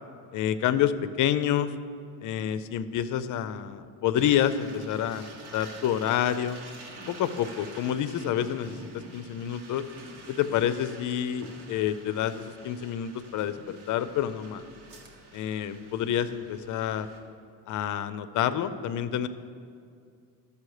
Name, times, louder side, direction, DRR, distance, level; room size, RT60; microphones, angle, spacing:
voice 1, 0.3-1.7 2.2-5.2 5.5-6.6 7.1-9.8 10.3-14.6 15.3-17.1 17.7-19.3, left 10 dB, 50° left, 13 dB, 0.5 m, -28 dB
sound 1, 4.2-17.2, right 2 dB, 75° right, 1.6 m, -48 dB
12.5 x 7.0 x 4.8 m, 2.3 s
cardioid pair, 150°, 39 cm